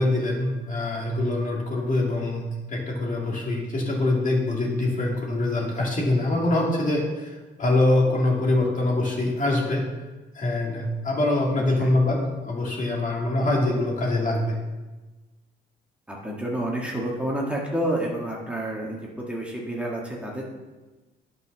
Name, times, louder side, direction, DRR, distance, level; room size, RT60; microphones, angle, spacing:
voice 1, 0.0-2.4 2.7-9.9 10.3-14.6, left 2 dB, 40° left, -2 dB, 2.6 m, -24 dB
voice 2, 16.1-20.4, right 1 dB, 5° right, -3 dB, 1.7 m, -29 dB
9.5 x 5.8 x 6.1 m, 1.2 s
cardioid pair, 90°, 20 cm